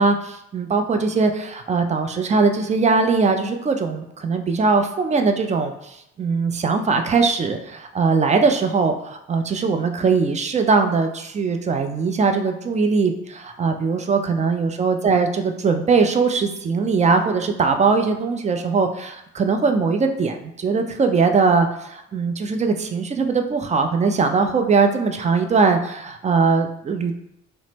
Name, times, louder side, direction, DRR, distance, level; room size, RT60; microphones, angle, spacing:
voice 1, 0.0-27.1, right 4 dB, 20° right, 6 dB, 0.3 m, -20 dB
2.8 x 2.1 x 3.2 m, 0.81 s
hypercardioid pair, 45°, 35 cm